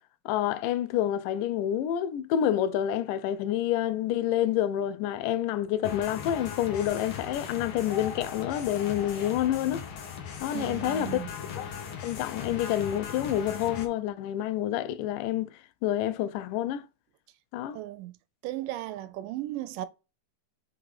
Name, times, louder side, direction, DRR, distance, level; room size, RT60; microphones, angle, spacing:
voice 1, 0.3-9.9 10.4-11.2 11.6-11.7 12.0-16.9 17.5-17.8, left 11 dB, 90° left, 2.2 m, -28 dB
sound 1, 5.8-13.9, left 7 dB, 70° left, 1.2 m, -38 dB
voice 2, 10.5-11.3 17.7-18.1 18.4-19.9, right 15 dB, 85° right, 2.2 m, -36 dB
5.3 x 3.8 x 4.7 m
omnidirectional pair, 3.7 m